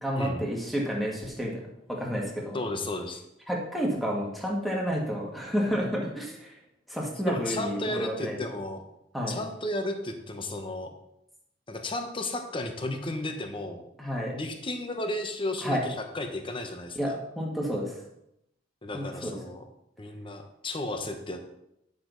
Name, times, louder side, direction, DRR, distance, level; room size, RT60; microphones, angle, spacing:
voice 1, 0.0-1.6 1.9-2.6 3.5-6.6 6.9-8.4 9.1-9.4 14.0-14.3 15.6-15.8 17.0-18.0 18.9-19.3, equal, ahead, -3 dB, 1.7 m, -30 dB
voice 2, 2.5-3.2 7.3-8.8 9.3-10.9 11.7-13.8 14.3-17.2 18.8-19.6 20.0-21.5, left 1 dB, 30° left, 5 dB, 1.1 m, -33 dB
10.0 x 6.8 x 4.0 m, 0.81 s
head